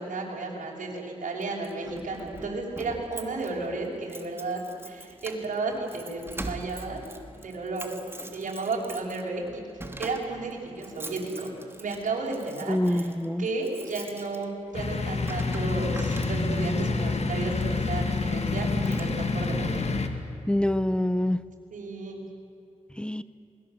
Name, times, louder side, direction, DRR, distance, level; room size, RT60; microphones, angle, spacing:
voice 1, 0.0-7.0 7.3-8.0 8.3-9.6 10.0-11.5 11.8-13.1 13.4-19.9 21.7-22.2, right 3 dB, 80° right, -2 dB, 5.8 m, -33 dB
Keys jangling, 1.4-16.8 17.5-17.8 18.2-18.4 18.6-19.5, right 1 dB, 20° right, 2.8 m, -43 dB
voice 2, 12.7-13.5 20.5-21.4 23.0-23.2, left 1 dB, 5° left, 14 dB, 0.9 m, -25 dB
sound 1, 14.7-20.1, left 3 dB, 55° left, 2.4 m, -28 dB
27.5 x 22.0 x 8.0 m, 2.6 s
cardioid pair, 65°, 13 cm